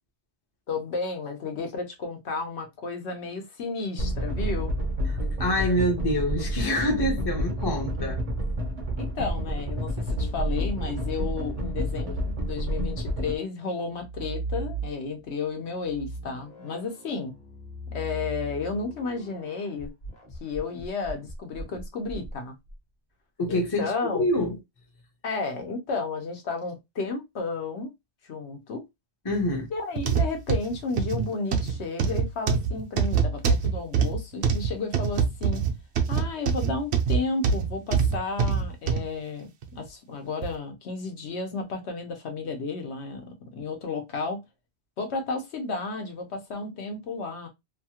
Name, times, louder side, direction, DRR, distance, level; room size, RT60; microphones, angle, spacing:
voice 1, 0.7-4.7 9.0-17.3 17.9-19.9 20.4-22.5 23.5-24.3 25.2-27.9 28.2-28.8 29.7-35.6 36.1-44.4 45.0-47.5, left 4 dB, 75° left, 1.1 m, -32 dB
sound 1, 4.0-13.4, equal, 40° right, 0.6 m, -29 dB
voice 2, 5.1-8.2 23.4-24.6 29.2-29.7, left 1 dB, 25° left, 0.6 m, -26 dB
sound 2, 13.9-15.3 15.8-22.8, right 2 dB, 45° left, 1.1 m, -38 dB
sound 3, 30.0-39.1 39.6-39.8 40.4-40.5, right 6 dB, 70° right, 0.9 m, -24 dB
2.8 x 2.3 x 2.8 m
omnidirectional pair, 1.1 m